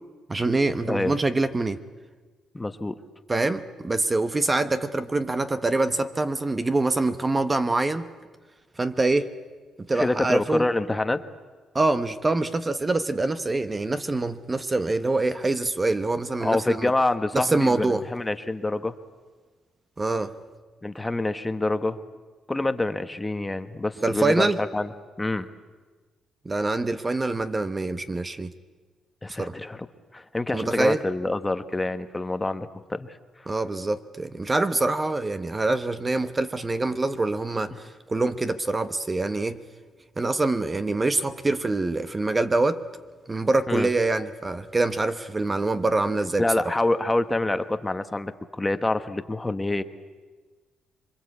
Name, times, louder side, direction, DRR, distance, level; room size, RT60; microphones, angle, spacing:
voice 1, 0.3-1.8 3.3-8.1 8.8-9.3 9.8-10.6 11.7-16.9 17.3-18.0 20.0-20.3 24.0-24.6 26.4-28.5 29.4-29.5 30.5-31.0 33.5-37.7 38.1-39.6 40.2-42.8 43.3-46.4, right 2 dB, 25° right, 10 dB, 1.0 m, -25 dB
voice 2, 2.5-3.0 9.9-11.2 16.4-18.9 20.8-22.0 22.5-24.9 25.2-25.5 29.2-29.9 30.1-33.1 33.4-33.5 37.7-37.8 43.7-43.9 46.4-49.8, left 2 dB, 15° left, 10 dB, 1.2 m, -26 dB
26.5 x 23.5 x 8.3 m, 1.4 s
cardioid pair, 95°, 0 cm